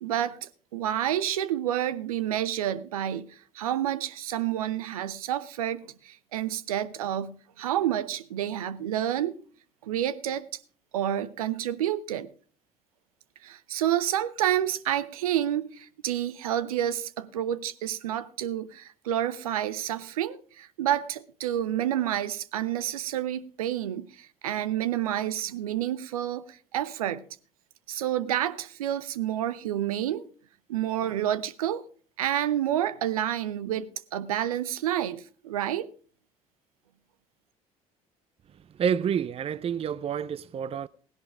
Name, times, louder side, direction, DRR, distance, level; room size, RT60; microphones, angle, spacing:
voice 1, 0.0-9.4 9.8-10.5 10.9-12.3 13.4-27.2 27.9-30.3 30.7-31.8 32.2-35.9, right 11 dB, 80° right, 0.7 m, -29 dB
voice 2, 38.7-40.9, right 7 dB, 35° right, 0.5 m, -28 dB
17.0 x 11.0 x 3.5 m
figure-of-eight pair, 55°, 18 cm